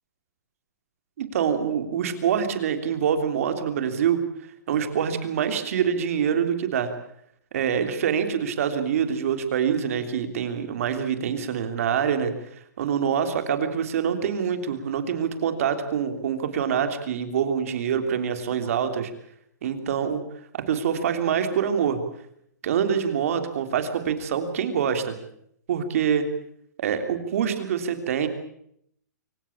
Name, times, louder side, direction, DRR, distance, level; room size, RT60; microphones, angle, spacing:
voice 1, 1.2-4.2 4.7-6.9 7.5-12.3 12.8-19.1 19.6-20.2 20.5-22.0 22.6-25.1 25.7-26.2 26.8-28.3, right 8 dB, 50° right, 8 dB, 3.2 m, -25 dB
24.5 x 17.0 x 8.7 m, 0.72 s
hypercardioid pair, 165°, 10 cm